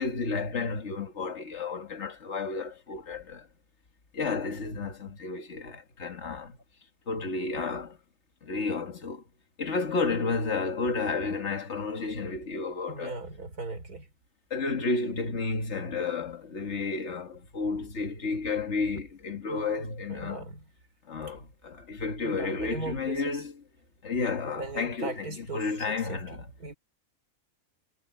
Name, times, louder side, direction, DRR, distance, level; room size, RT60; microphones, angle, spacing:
voice 1, 0.0-3.5 4.1-6.6 7.1-8.0 8.4-9.2 9.6-13.2 14.5-20.5 21.1-23.6 24.0-26.5, left 4 dB, 50° left, 2.0 m, -32 dB
voice 2, 12.9-14.1 19.5-19.8 20.1-20.6 22.2-23.4 24.6-26.8, right 3 dB, 90° right, 4.2 m, -39 dB
omnidirectional pair, 1.6 m